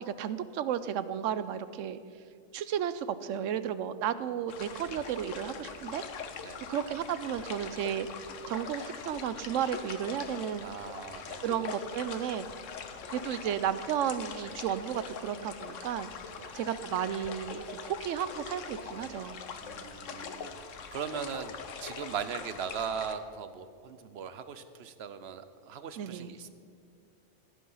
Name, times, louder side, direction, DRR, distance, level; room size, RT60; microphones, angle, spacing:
voice 1, 0.0-2.0 2.5-6.0 6.7-8.1 8.5-10.7 11.4-12.5 13.1-16.1 16.5-19.4 26.0-26.3, right 9 dB, 85° right, 14 dB, 1.0 m, -33 dB
sound 1, 4.5-23.1, left 6 dB, 80° left, 1.2 m, -43 dB
voice 2, 10.6-11.5 16.4-16.5 19.6-26.5, right 7 dB, 60° right, 12 dB, 0.9 m, -39 dB
15.0 x 9.5 x 5.6 m, 2.3 s
omnidirectional pair, 1.3 m